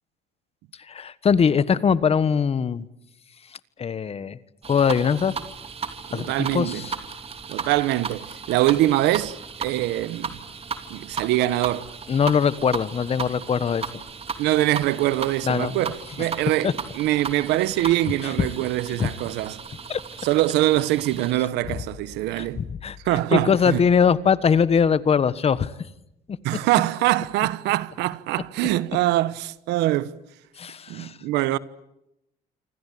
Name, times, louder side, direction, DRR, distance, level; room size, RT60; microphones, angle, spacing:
voice 1, 0.9-2.9 3.8-4.4 4.6-5.4 6.1-6.9 12.1-13.9 15.4-15.8 16.2-16.3 16.6-16.7 18.2-18.5 18.9-19.1 19.9-20.0 22.4-25.7 30.6-31.2, left 6 dB, 35° left, 1.4 m, -22 dB
sound 1, 4.6-21.3, right 5 dB, 35° right, 2.9 m, -36 dB
voice 2, 6.1-6.8 7.5-10.4 10.9-11.9 14.4-19.6 20.2-22.6 23.0-23.8 26.4-30.1 30.9-31.6, right 15 dB, 90° right, 1.2 m, -23 dB
28.0 x 25.0 x 8.5 m
cardioid pair, 110°, 17 cm